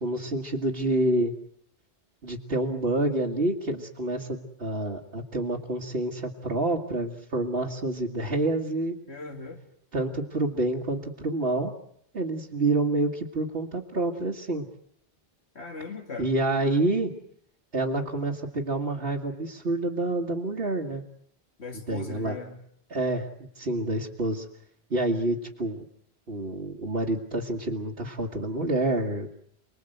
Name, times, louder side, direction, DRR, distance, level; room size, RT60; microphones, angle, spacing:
voice 1, 0.0-1.3 2.2-9.0 9.9-11.7 12.1-14.7 16.2-17.1 17.7-21.0 21.9-22.4 22.9-23.3 23.6-24.5 24.9-25.8 26.3-29.3, right 2 dB, 70° right, -3 dB, 2.2 m, -28 dB
voice 2, 9.1-9.6 15.5-16.3 21.6-22.6, left 4 dB, 90° left, 4 dB, 2.9 m, -39 dB
30.0 x 21.0 x 7.9 m, 0.70 s
omnidirectional pair, 1.1 m